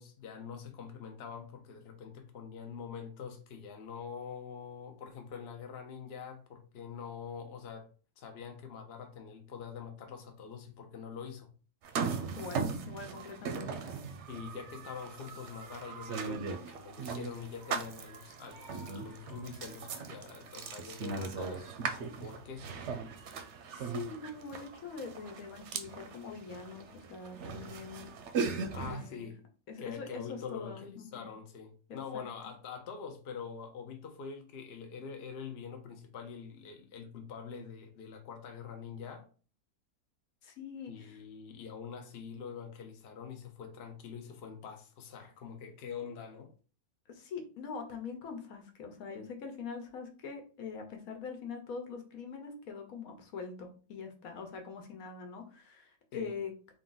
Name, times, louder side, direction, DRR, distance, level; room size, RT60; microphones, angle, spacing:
voice 1, 0.0-7.9 8.2-11.5 14.3-22.7 28.7-29.4 29.8-39.3 40.9-46.5 56.1-56.4, left 6 dB, 55° left, 0.8 m, -45 dB
sound 1, 11.8-29.1, right 5 dB, 65° right, 0.8 m, -39 dB
voice 2, 12.3-13.8 23.7-28.5 28.8-29.3 29.7-31.3 32.1-32.2 40.4-41.2 45.2-45.3 47.1-56.7, left 5 dB, 75° left, 1.3 m, -43 dB
3.6 x 2.6 x 3.9 m
omnidirectional pair, 1.5 m